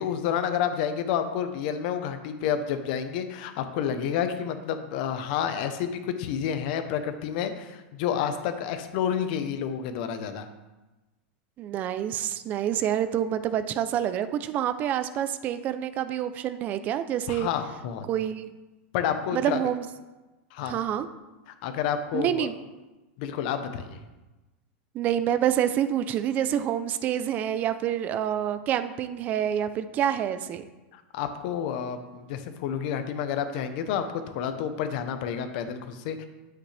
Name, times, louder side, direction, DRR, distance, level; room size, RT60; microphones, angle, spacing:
voice 1, 0.0-10.5 17.3-18.0 18.9-19.6 20.5-20.8 21.5-22.5 23.2-24.0 30.9-36.2, left 8 dB, 50° left, 8 dB, 0.9 m, -29 dB
voice 2, 11.6-17.5 18.1-18.5 19.3-19.9 20.6-21.1 22.1-22.5 24.9-30.6, right 10 dB, 30° right, 11 dB, 0.5 m, -27 dB
9.5 x 8.1 x 3.4 m, 1.1 s
supercardioid pair, 160°, 6 cm